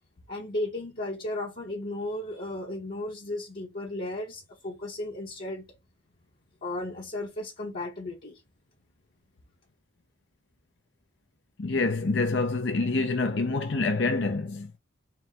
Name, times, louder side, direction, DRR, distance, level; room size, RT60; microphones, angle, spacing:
voice 1, 0.3-5.7 6.6-8.4, left 1 dB, 50° left, 1.1 m, -35 dB
voice 2, 11.6-14.7, left 3 dB, 65° left, 0.7 m, -26 dB
4.6 x 2.2 x 3.6 m
head